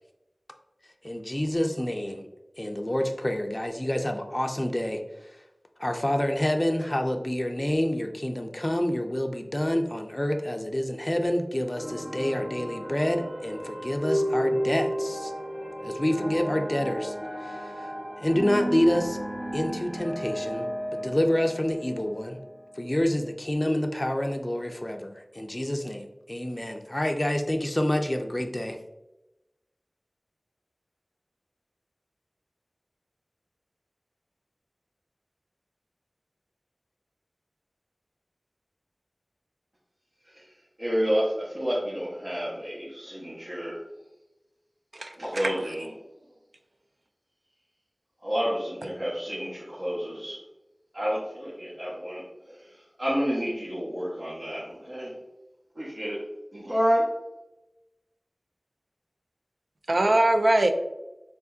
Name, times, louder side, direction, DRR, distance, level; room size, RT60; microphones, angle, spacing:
voice 1, 1.0-2.3 2.6-5.4 5.8-15.3 15.8-17.9 18.2-19.2 19.5-22.4 22.7-28.8, left 1 dB, 25° left, 4 dB, 0.4 m, -28 dB
sound 1, 11.7-23.0, equal, 35° right, 1.4 m, -33 dB
voice 2, 40.8-43.8 45.2-45.9 48.2-50.4 50.9-52.7 53.0-55.1 55.7-56.2 56.5-57.1, equal, 60° right, -9 dB, 1.4 m, -29 dB
voice 3, 44.9-45.5 59.9-60.7, right 1 dB, 80° right, 6 dB, 0.5 m, -22 dB
4.7 x 3.6 x 2.7 m, 0.98 s
wide cardioid pair, 55°, 0 cm